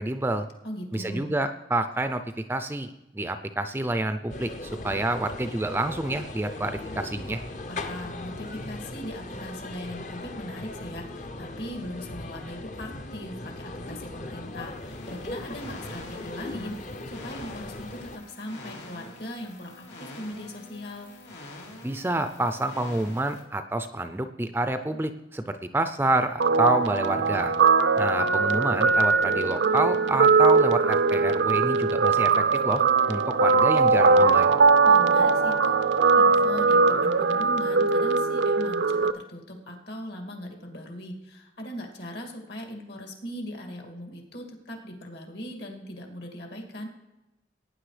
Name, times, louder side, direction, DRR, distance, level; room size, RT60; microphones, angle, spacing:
voice 1, 0.0-0.5 0.9-2.2 2.5-7.4 21.8-27.5 28.0-34.5, right 1 dB, 10° right, 9 dB, 0.4 m, -28 dB
voice 2, 0.6-1.4 7.7-21.1 34.8-46.9, equal, 70° left, 2 dB, 2.3 m, -39 dB
sound 1, 4.3-18.2, left 2 dB, 40° left, 0.6 m, -39 dB
sound 2, 14.5-23.4, left 2 dB, 90° left, 2.6 m, -46 dB
Guitar, 26.4-39.1, right 4 dB, 80° right, 0.5 m, -21 dB
17.5 x 9.6 x 3.3 m, 0.99 s
head